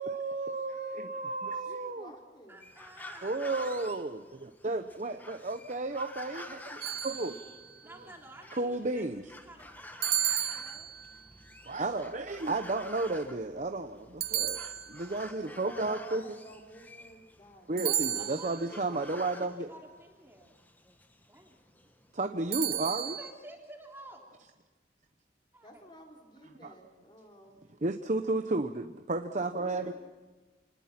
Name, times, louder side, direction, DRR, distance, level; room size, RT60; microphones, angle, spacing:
voice 1, 0.0-2.1 3.2-7.4 8.5-9.3 11.6-14.6 14.9-16.2 17.7-19.7 22.1-23.2 26.6-26.7 27.8-29.9, right 2 dB, 45° right, 6 dB, 0.9 m, -33 dB
voice 2, 1.5-2.7 6.8-8.2 15.3-18.0 22.5-22.6 25.6-27.6 29.3-29.9, equal, 25° left, 1 dB, 3.8 m, -53 dB
voice 3, 2.5-3.5 7.8-9.1 9.4-10.9 17.8-20.5 21.2-21.6 22.8-24.3 25.5-25.8, right 1 dB, 15° right, 0 dB, 3.3 m, -51 dB
sound 1, 2.6-22.2, left 1 dB, 10° left, 1.3 m, -50 dB
sound 2, 6.8-7.7 10.0-11.3 14.2-15.3 17.8-18.7 22.5-23.3, right 11 dB, 60° right, 1.0 m, -33 dB
28.0 x 20.5 x 6.0 m, 1.3 s
head